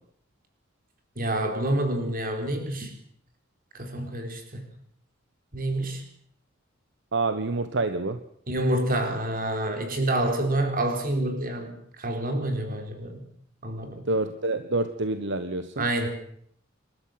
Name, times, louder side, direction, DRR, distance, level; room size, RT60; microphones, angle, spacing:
voice 1, 1.2-2.9 3.7-4.6 5.5-6.0 8.5-13.2 13.6-14.1 15.8-16.1, right 1 dB, 45° right, 5 dB, 4.4 m, -28 dB
voice 2, 7.1-8.2 14.1-15.8, right 2 dB, 65° right, 10 dB, 1.2 m, -27 dB
27.5 x 13.0 x 7.9 m, 0.66 s
head